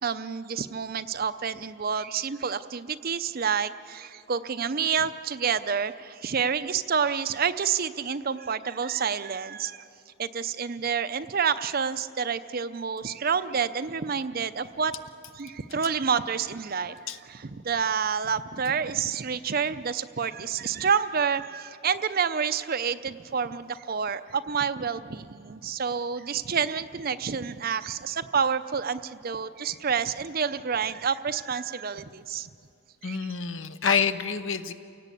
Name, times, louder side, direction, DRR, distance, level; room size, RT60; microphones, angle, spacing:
voice 1, 0.0-9.8 10.2-14.9 15.3-32.5 33.0-33.3, right 6 dB, 45° right, 12 dB, 0.6 m, -28 dB
voice 2, 33.0-34.7, left 6 dB, 60° left, 11 dB, 0.9 m, -27 dB
28.5 x 17.5 x 8.5 m, 2.6 s
head